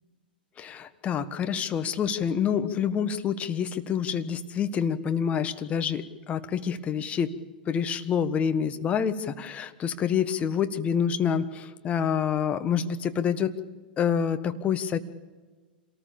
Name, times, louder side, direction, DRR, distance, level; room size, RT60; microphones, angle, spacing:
voice 1, 0.6-7.3 7.7-13.6 14.0-15.0, left 7 dB, 25° left, 9 dB, 1.4 m, -27 dB
27.0 x 19.0 x 7.1 m, 1.3 s
figure-of-eight pair, 100°, 5 cm